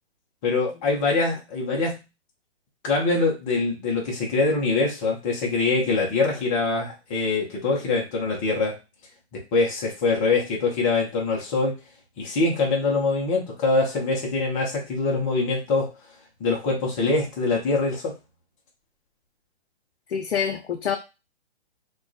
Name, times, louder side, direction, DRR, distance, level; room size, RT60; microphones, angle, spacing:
voice 1, 0.4-2.0 2.8-8.8 9.3-11.7 12.2-15.9 16.4-18.1, left 3 dB, 15° left, 0.4 m, -24 dB
voice 2, 20.1-21.0, left 7 dB, 80° left, 0.5 m, -26 dB
2.2 x 2.2 x 2.5 m
hypercardioid pair, 130°, 33 cm